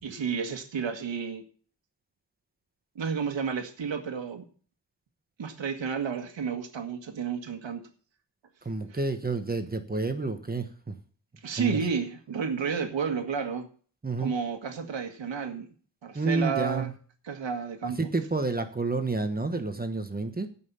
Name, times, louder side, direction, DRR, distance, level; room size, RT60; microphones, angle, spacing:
voice 1, 0.0-1.4 3.0-4.5 5.4-7.8 11.4-13.7 14.2-15.7 16.0-16.9 17.2-18.0, right 6 dB, 90° right, 5 dB, 1.8 m, -31 dB
voice 2, 8.6-10.9 11.6-11.8 14.0-14.3 16.1-16.9 17.8-20.5, right 3 dB, 20° right, 7 dB, 1.1 m, -29 dB
16.5 x 5.8 x 5.6 m, 0.43 s
wide cardioid pair, 115°, 43 cm